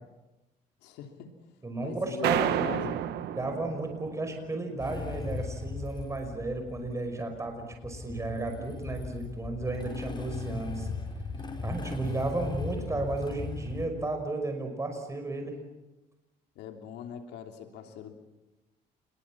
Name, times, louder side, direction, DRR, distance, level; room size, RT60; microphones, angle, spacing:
voice 1, 0.8-1.4 1.8-3.0 16.5-18.1, left 7 dB, 85° left, 5 dB, 3.2 m, -40 dB
voice 2, 1.6-2.7 3.3-10.9 11.6-15.6, right 2 dB, 15° right, 4 dB, 5.5 m, -33 dB
sound 1, 2.2-4.6, right 11 dB, 80° right, 1.5 m, -31 dB
Motorcycle / Engine starting, 4.8-13.9, left 4 dB, 25° left, 5.1 m, -38 dB
28.0 x 21.5 x 7.4 m, 1.0 s
cardioid pair, 110°, 17 cm